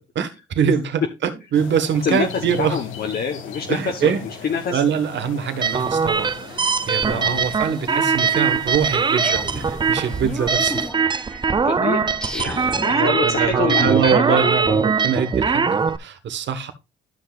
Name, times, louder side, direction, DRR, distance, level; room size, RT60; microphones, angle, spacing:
voice 1, 0.1-2.8 3.7-4.2 4.7-10.8 12.4-16.7, right 7 dB, 65° right, 1.5 m, -24 dB
sound 1, 1.5-10.9, left 6 dB, 90° left, 2.0 m, -39 dB
voice 2, 2.0-4.8 7.1-7.4 11.5-14.8, left 6 dB, 50° left, 1.1 m, -26 dB
sound 2, 5.6-16.0, right 5 dB, 25° right, 0.5 m, -21 dB
sound 3, 9.2-15.0, equal, 5° left, 0.9 m, -35 dB
12.5 x 6.0 x 2.4 m
cardioid pair, 90°, 20 cm